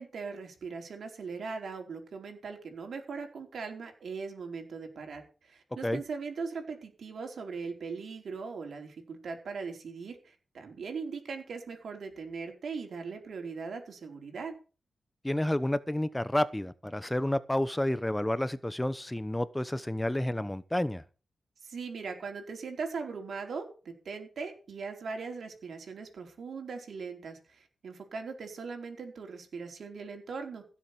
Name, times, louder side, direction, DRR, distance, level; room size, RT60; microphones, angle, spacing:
voice 1, 0.0-14.6 21.6-30.6, right 5 dB, 75° right, 4.4 m, -40 dB
voice 2, 15.2-21.0, left 1 dB, 10° left, 1.0 m, -30 dB
16.5 x 7.4 x 6.8 m
cardioid pair, 75°, 0 cm